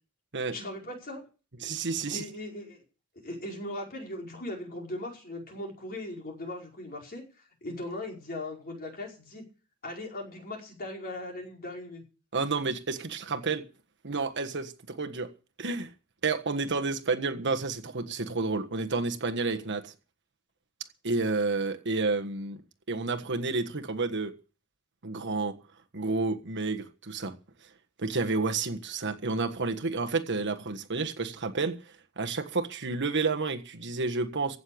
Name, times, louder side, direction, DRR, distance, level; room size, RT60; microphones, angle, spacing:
voice 1, 0.5-1.2 2.0-2.8 3.2-9.4 9.8-12.0, left 1 dB, 45° left, 5.0 m, -39 dB
voice 2, 1.6-2.2 12.3-13.6 14.0-15.3 15.6-15.9 16.2-19.9 21.0-22.6 22.9-24.3 25.0-25.6 25.9-27.4 28.0-31.8 32.2-34.6, right 3 dB, 55° right, 1.5 m, -30 dB
16.0 x 7.0 x 8.6 m
head